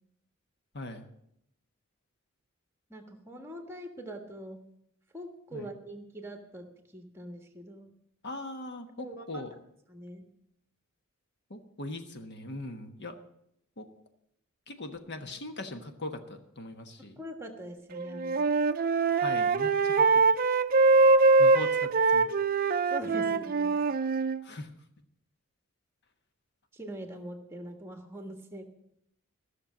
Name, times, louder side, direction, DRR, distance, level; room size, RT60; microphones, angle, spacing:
voice 1, 0.7-1.1 5.5-5.7 8.2-9.5 11.5-13.2 13.8-13.9 14.7-17.1 19.1-20.3 21.4-22.3 24.4-24.7, left 2 dB, 55° left, 7 dB, 1.2 m, -40 dB
voice 2, 2.9-4.6 5.1-6.7 6.9-7.9 9.0-9.4 9.9-10.2 17.2-18.5 22.9-23.8 26.7-28.6, right 1 dB, 10° right, 4 dB, 1.4 m, -43 dB
Wind instrument woodwind instrument, 17.9-24.4, right 3 dB, 40° right, 0.5 m, -23 dB
14.5 x 6.6 x 7.2 m, 0.76 s
head